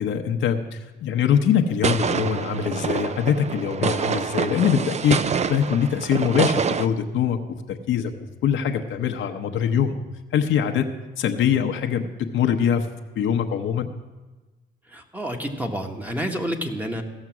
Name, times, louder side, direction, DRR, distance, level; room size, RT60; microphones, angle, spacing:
voice 1, 0.0-5.2 5.5-7.4 7.7-8.1 8.4-10.0 10.3-10.9 11.2-12.9 13.1-13.9, left 8 dB, 75° left, 4 dB, 0.8 m, -23 dB
sound 1, 1.8-6.9, right 6 dB, 35° right, 0.5 m, -26 dB
voice 2, 14.9-17.0, equal, 10° right, 3 dB, 1.3 m, -29 dB
15.5 x 6.6 x 6.0 m, 1.2 s
cardioid pair, 90°, 20 cm